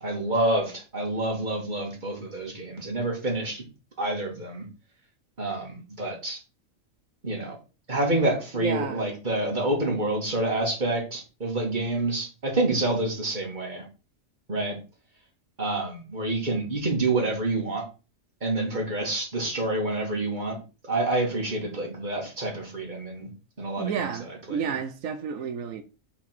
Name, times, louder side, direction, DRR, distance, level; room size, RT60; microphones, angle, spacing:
voice 1, 0.0-3.6 4.0-4.6 5.4-6.4 7.2-7.6 7.9-13.8 14.5-14.8 15.6-17.8 18.4-20.6 20.9-23.3 23.6-24.1 24.5-24.7, right 2 dB, 35° right, 2.6 m, -28 dB
voice 2, 8.5-9.1 23.8-25.8, right 7 dB, 85° right, 1.2 m, -31 dB
5.9 x 4.9 x 6.1 m
omnidirectional pair, 1.3 m